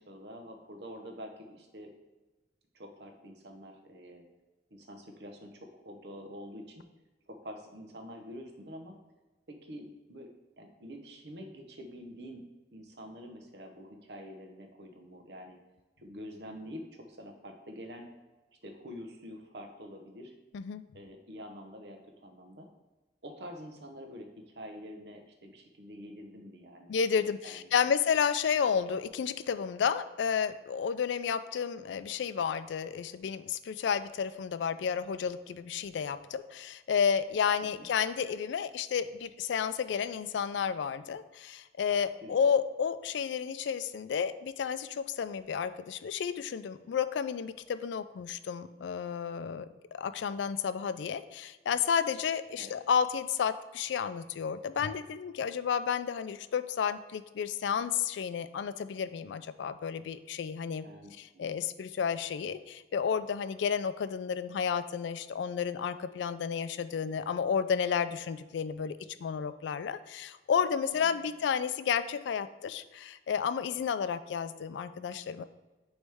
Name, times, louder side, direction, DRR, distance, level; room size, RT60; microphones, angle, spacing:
voice 1, 0.0-1.9 2.7-4.2 4.7-6.8 7.3-9.0 9.5-10.3 10.6-12.4 12.7-15.6 16.0-18.1 18.6-20.3 20.9-22.7 23.2-26.9 27.2-27.7 37.7-37.9 42.2-42.5 52.6-52.7 60.8-61.6 70.9-71.3, equal, 65° right, 3 dB, 0.9 m, -47 dB
voice 2, 26.9-49.7 49.9-60.9 61.2-75.4, left 7 dB, 80° left, 12 dB, 0.3 m, -31 dB
9.4 x 3.2 x 3.5 m, 1.2 s
head